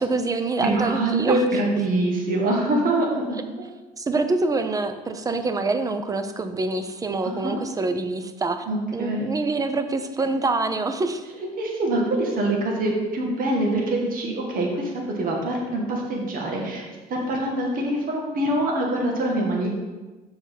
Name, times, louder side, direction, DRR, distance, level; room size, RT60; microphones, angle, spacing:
voice 1, 0.0-1.4 3.3-3.4 4.0-8.6 8.9-11.2, right 3 dB, 20° right, 8 dB, 0.6 m, -25 dB
voice 2, 0.6-3.7 7.2-7.6 8.7-9.3 11.4-16.8 17.1-19.7, right 1 dB, 55° right, -1 dB, 1.9 m, -24 dB
7.0 x 4.7 x 5.8 m, 1.2 s
cardioid pair, 110°, 17 cm